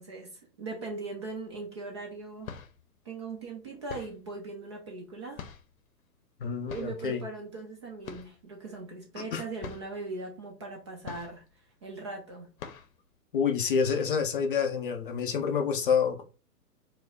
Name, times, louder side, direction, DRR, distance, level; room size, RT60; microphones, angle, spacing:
voice 1, 0.0-2.6 3.0-5.4 6.7-11.4 11.8-12.5, right 3 dB, 20° right, 0.4 m, -40 dB
sound 1, 1.5-1.6 2.2-2.9 3.9-4.3 5.3-5.9 6.7-7.1 8.0-8.5 8.7-8.8 9.2-9.3 9.6-10.0 11.0-11.6 12.0-12.1 12.6-13.0, left 7 dB, 60° left, 0.8 m, -44 dB
voice 2, 6.4-7.2 9.3-9.4 13.3-16.2, left 6 dB, 35° left, 0.5 m, -28 dB
4.6 x 2.1 x 3.8 m
figure-of-eight pair, 125°, 48 cm